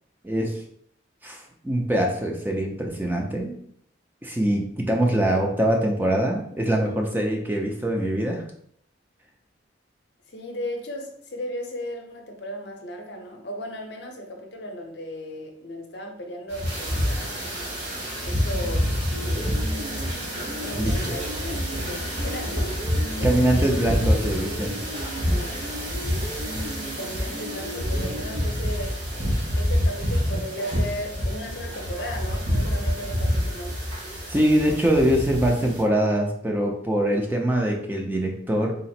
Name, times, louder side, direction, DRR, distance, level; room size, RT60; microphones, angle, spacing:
voice 1, 0.2-0.6 1.2-3.6 4.2-8.4 20.8-21.1 23.2-24.8 34.3-38.8, right 1 dB, 10° right, 1 dB, 0.4 m, -23 dB
voice 2, 10.3-17.9 18.2-19.6 20.6-22.7 23.1-23.7 25.2-25.6 27.0-29.0 29.6-33.8, equal, 60° left, 2 dB, 0.7 m, -36 dB
sound 1, 16.5-35.8, equal, 55° right, 1.5 m, -27 dB
sound 2, 19.1-28.4, equal, 80° right, 1.2 m, -37 dB
3.8 x 2.0 x 4.2 m, 0.67 s
head